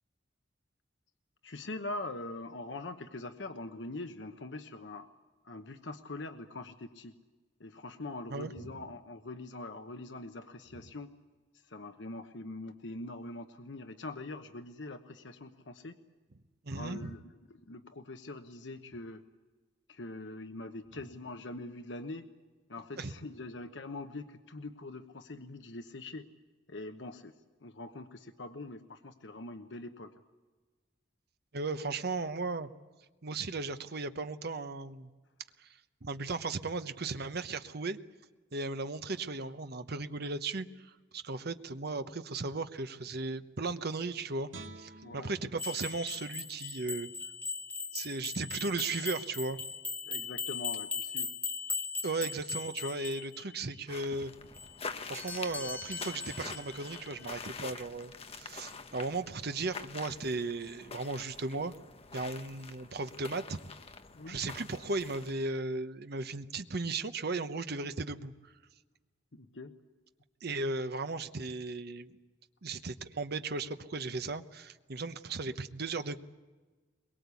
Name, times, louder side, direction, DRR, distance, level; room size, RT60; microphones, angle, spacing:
voice 1, 1.4-5.1 5.4-7.1 7.6-11.1 11.7-15.9 16.7-17.2 17.5-19.2 19.9-22.3 22.7-26.3 26.7-27.3 27.6-30.1 31.8-32.0 45.0-45.3 50.0-51.3 64.1-64.4 69.3-69.7, left 2 dB, 70° left, 7 dB, 1.1 m, -43 dB
voice 2, 8.3-8.7 16.6-17.2 23.0-23.1 31.5-32.7 33.2-35.1 35.6-35.7 36.0-38.0 38.5-40.7 41.1-44.5 44.8-47.1 47.9-49.6 52.0-54.3 55.0-61.7 62.1-63.6 64.3-68.3 70.4-72.1 72.6-76.2, right 3 dB, 60° right, 10 dB, 1.0 m, -36 dB
Guitar, 44.5-47.7 48.1-48.2, right 3 dB, 85° right, 1.6 m, -52 dB
sound 1, 45.6-53.8 54.6-57.8, left 4 dB, 10° left, 1.2 m, -39 dB
sound 2, 53.9-65.5, left 4 dB, 35° left, 1.0 m, -46 dB
22.5 x 22.0 x 8.4 m, 1.3 s
head